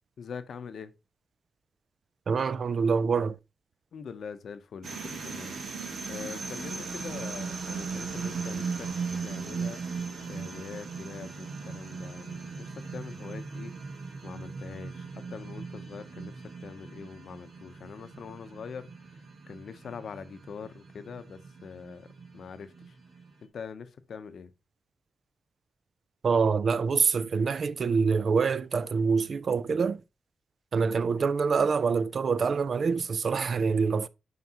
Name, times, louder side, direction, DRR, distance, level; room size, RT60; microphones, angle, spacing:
voice 1, 0.2-0.9 3.9-5.6 6.1-8.9 9.2-9.8 10.3-13.7 14.2-16.3 16.6-19.2 19.5-22.1 22.3-23.0 23.5-24.5, left 6 dB, 75° left, 0.7 m, -43 dB
voice 2, 2.3-3.4 26.2-30.0 30.7-34.1, right 5 dB, 55° right, 0.4 m, -25 dB
sound 1, 4.8-23.3, right 5 dB, 75° right, 1.6 m, -38 dB
9.5 x 5.2 x 2.9 m
wide cardioid pair, 115°, 0 cm